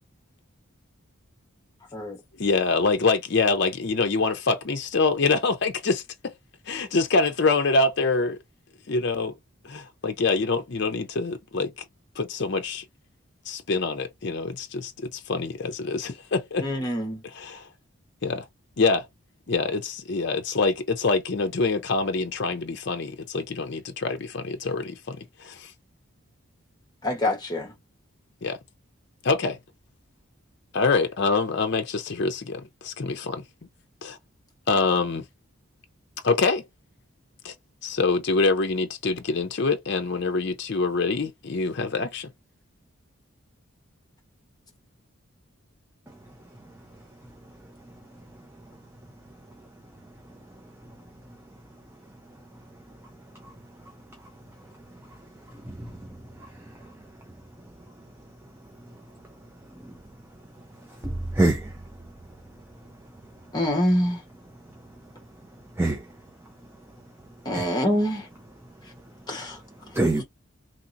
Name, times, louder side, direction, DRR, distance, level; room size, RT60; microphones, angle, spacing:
voice 1, 2.4-6.3 6.7-8.4 8.9-9.3 9.6-11.7 12.2-12.8 13.5-16.7 17.2-17.7 18.2-18.4 18.8-19.1 19.5-25.7 28.4-28.6 29.2-29.6 30.7-33.4 34.0-34.2 34.7-35.2 36.2-36.6 37.4-37.5 37.8-42.3, left 3 dB, 55° left, 0.5 m, -25 dB
voice 2, 16.6-17.2 27.0-27.7 63.5-64.2 67.4-68.3 69.3-69.6 70.0-70.2, left 1 dB, 20° left, 1.1 m, -25 dB
voice 3, 55.6-56.1 56.4-56.7 59.8-59.9 61.0-61.7 65.8-66.1 67.5-67.7 69.9-70.2, right 2 dB, 10° right, 0.4 m, -25 dB
3.1 x 2.7 x 2.6 m
head